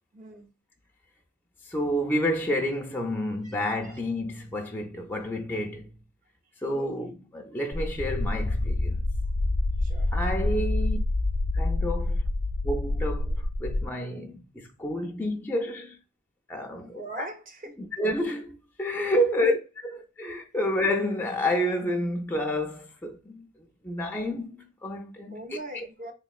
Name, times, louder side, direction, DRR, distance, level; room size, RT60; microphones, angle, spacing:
voice 1, 0.1-0.5 3.4-3.6 3.8-4.0 6.6-7.1 9.8-10.1 16.8-17.8 20.4-20.5 25.3-26.1, right 1 dB, 40° right, 0.5 m, -41 dB
voice 2, 1.6-6.0 6.6-9.0 10.1-11.0 11.5-12.2 12.6-16.0 16.5-17.3 18.0-19.6 19.8-23.5 23.8-25.4 25.7-25.8, left 1 dB, 10° left, 0.3 m, -29 dB
sound 1, 7.7-13.9, left 2 dB, 85° left, 0.6 m, -27 dB
3.6 x 2.9 x 2.3 m
head